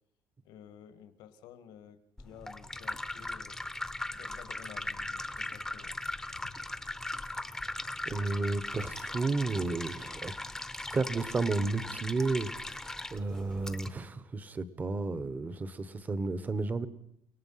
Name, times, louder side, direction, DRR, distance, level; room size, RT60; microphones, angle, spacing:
voice 1, 0.4-3.6 4.1-6.0 6.4-6.5, left 9 dB, 90° left, 11 dB, 1.8 m, -52 dB
sound 1, 2.2-13.9, left 2 dB, 5° left, 0.8 m, -39 dB
voice 2, 8.1-10.4 10.9-16.9, right 3 dB, 25° right, 15 dB, 1.0 m, -32 dB
30.0 x 18.0 x 5.7 m, 0.75 s
cardioid pair, 150°, 7 cm